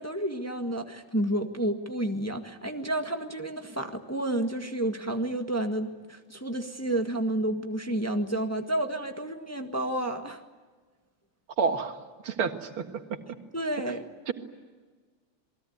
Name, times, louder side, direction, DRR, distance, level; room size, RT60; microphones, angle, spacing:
voice 1, 0.0-10.4 13.5-14.0, right 1 dB, 10° left, 5 dB, 1.4 m, -30 dB
voice 2, 11.6-11.9 12.2-12.7 13.9-14.0 14.3-14.4, right 5 dB, 90° right, 6 dB, 2.6 m, -28 dB
28.0 x 20.5 x 9.5 m, 1.4 s
omnidirectional pair, 2.3 m